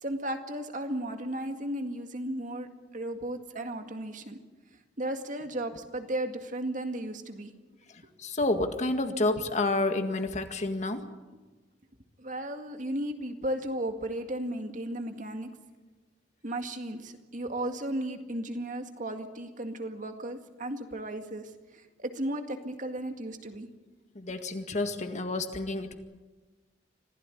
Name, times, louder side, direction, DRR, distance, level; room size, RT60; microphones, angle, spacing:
voice 1, 0.0-2.7 2.9-4.4 5.0-7.5 12.2-15.5 16.4-23.7, right 1 dB, 45° right, 6 dB, 2.1 m, -35 dB
voice 2, 7.9-11.0 24.2-25.9, left 2 dB, 40° left, 7 dB, 2.0 m, -29 dB
26.0 x 16.5 x 10.0 m, 1.2 s
head